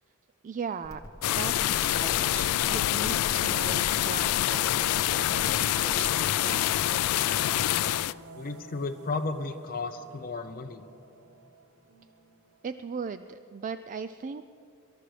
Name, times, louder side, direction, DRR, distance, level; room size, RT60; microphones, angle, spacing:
voice 1, 0.4-6.9 12.6-14.5, right 5 dB, 35° right, 11 dB, 0.3 m, -38 dB
sound 1, 0.8-6.2, left 1 dB, 15° left, 1.1 m, -44 dB
sound 2, 1.2-8.1, left 13 dB, 90° left, 0.3 m, -26 dB
sound 3, 5.7-12.7, right 2 dB, 75° right, 1.1 m, -50 dB
voice 2, 8.3-10.8, left 3 dB, 40° left, 5 dB, 0.5 m, -34 dB
24.0 x 13.5 x 3.3 m, 3.0 s
head